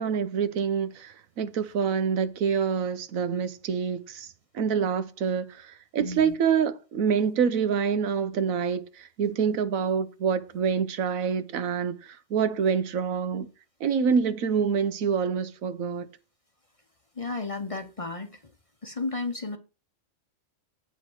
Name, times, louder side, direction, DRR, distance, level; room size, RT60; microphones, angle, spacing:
voice 1, 0.0-13.5 13.8-16.1, right 6 dB, 85° right, 1.3 m, -26 dB
voice 2, 6.0-6.3 17.2-18.4 18.8-19.6, left 3 dB, 30° left, 0.8 m, -33 dB
8.3 x 5.0 x 6.1 m
omnidirectional pair, 1.4 m